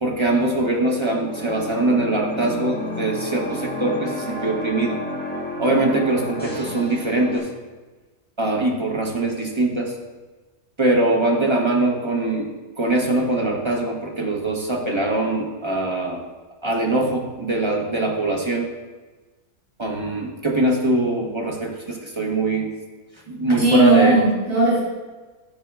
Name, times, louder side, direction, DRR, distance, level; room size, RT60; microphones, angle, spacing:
voice 1, 0.0-5.0 5.6-7.5 8.4-10.0 10.8-12.5 12.8-16.2 16.6-18.7 19.8-22.7 23.3-24.2, right 2 dB, 30° right, 0 dB, 0.6 m, -22 dB
sound 1, 1.0-7.4, left 1 dB, 5° left, 1.5 m, -31 dB
voice 2, 23.6-24.8, right 2 dB, 85° right, -11 dB, 2.6 m, -17 dB
11.5 x 5.5 x 2.3 m, 1.3 s
omnidirectional pair, 1.6 m